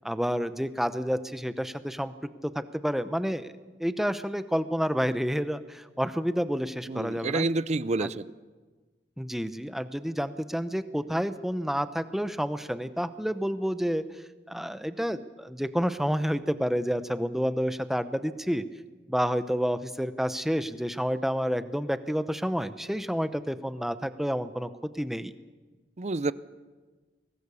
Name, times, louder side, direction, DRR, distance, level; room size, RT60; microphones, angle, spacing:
voice 1, 0.0-2.1 2.5-3.5 3.8-7.5 8.0-8.1 9.2-14.1 14.5-18.6 19.1-24.7 24.9-25.3, equal, ahead, 11 dB, 0.8 m, -29 dB
voice 2, 6.9-8.3 26.0-26.3, right 3 dB, 40° right, 17 dB, 0.6 m, -28 dB
23.0 x 18.5 x 7.0 m, 1.3 s
head